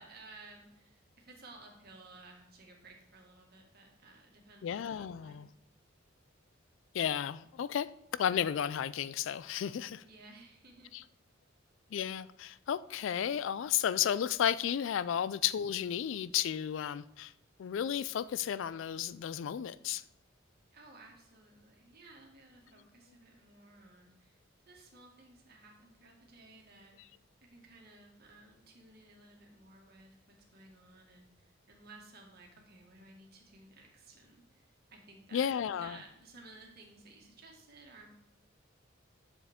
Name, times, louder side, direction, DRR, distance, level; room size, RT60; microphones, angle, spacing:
voice 1, 0.0-5.5 10.0-10.9 20.7-38.2, right 2 dB, 50° right, 1.8 m, -56 dB
voice 2, 4.6-5.5 6.9-7.9 8.2-10.0 10.9-11.0 11.9-17.3 17.6-20.0 35.3-36.0, left 9 dB, 70° left, 0.3 m, -33 dB
9.7 x 7.1 x 3.6 m
head